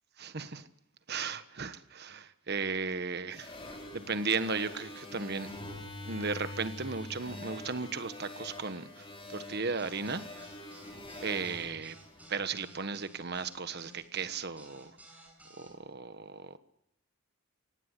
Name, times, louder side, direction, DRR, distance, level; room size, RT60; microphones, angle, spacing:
voice 1, 0.2-0.7 1.1-5.5 6.0-10.5 11.2-11.9 12.3-14.9 15.6-16.6, right 4 dB, 50° right, 1.3 m, -36 dB
sound 1, 3.3-12.8, left 2 dB, 25° left, 4.6 m, -45 dB
sound 2, 9.8-15.7, right 1 dB, 5° right, 7.2 m, -55 dB
24.5 x 18.0 x 8.4 m
head